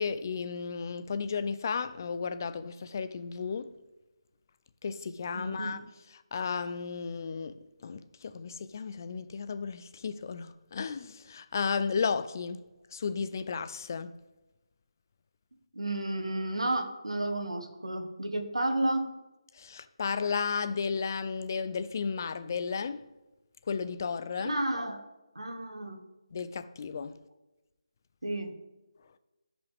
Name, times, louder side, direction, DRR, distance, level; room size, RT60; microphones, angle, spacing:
voice 1, 0.0-3.7 4.8-5.8 6.1-12.6 12.9-14.1 19.5-23.1 23.6-24.6 26.3-27.2, left 5 dB, 35° left, 0.5 m, -34 dB
voice 2, 5.3-5.7 15.7-19.2 24.4-25.0 25.3-26.0 28.2-28.5, right 1 dB, 75° right, 1.4 m, -32 dB
13.5 x 5.2 x 3.5 m
figure-of-eight pair, 150°, 3 cm